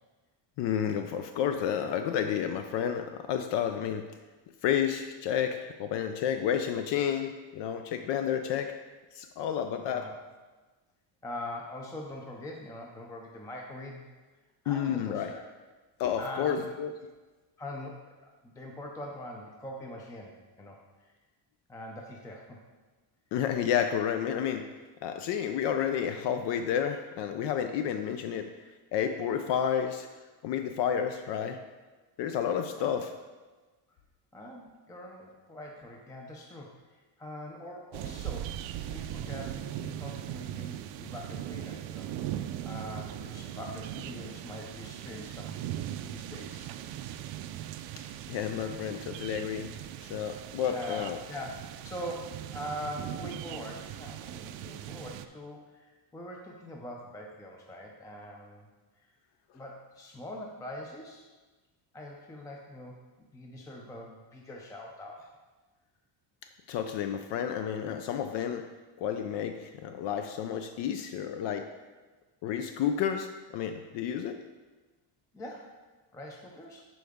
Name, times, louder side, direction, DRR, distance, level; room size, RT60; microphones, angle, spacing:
voice 1, 0.6-4.1 4.6-8.7 9.1-10.1 14.7-15.3 16.0-16.9 23.3-24.7 25.0-28.5 28.9-30.1 30.4-31.6 32.2-33.1 48.3-49.7 50.0-51.2 66.7-68.7 69.0-71.7 72.4-74.4, left 8 dB, 70° left, 7 dB, 0.6 m, -30 dB
voice 2, 9.8-10.1 11.2-14.1 14.6-15.5 16.2-16.7 17.6-21.1 21.7-22.6 32.8-33.0 34.3-38.6 38.9-46.8 50.7-58.7 59.0-59.1 59.5-61.3 61.9-63.0 63.3-65.3 75.3-75.8 76.1-76.9, left 1 dB, 10° left, 0 dB, 0.4 m, -43 dB
sound 1, 37.9-55.3, right 12 dB, 80° right, 0.6 m, -39 dB
10.5 x 4.7 x 3.5 m, 1.3 s
cardioid pair, 170°, 44 cm